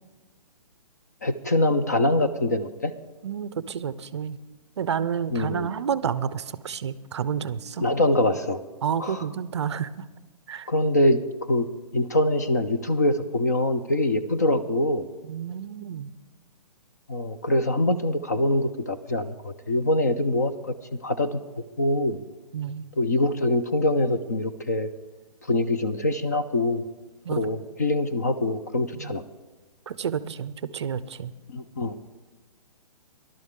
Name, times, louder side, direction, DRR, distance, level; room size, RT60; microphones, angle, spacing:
voice 1, 1.2-2.9 5.3-5.7 7.8-8.6 9.0-9.3 10.7-11.2 11.5-11.7 11.9-15.1 17.1-20.7 21.0-21.4 21.8-22.2 23.0-24.9 25.4-26.8 27.3-29.2 31.5-32.0, left 1 dB, 25° left, 9 dB, 0.3 m, -24 dB
voice 2, 3.2-4.4 4.8-7.9 8.8-9.9 10.5-10.7 15.2-16.1 22.5-22.9 27.2-27.4 29.0-29.2 29.9-31.3, right 7 dB, 45° right, 15 dB, 0.5 m, -30 dB
20.5 x 11.5 x 3.6 m, 1.2 s
hypercardioid pair, 170°, 20 cm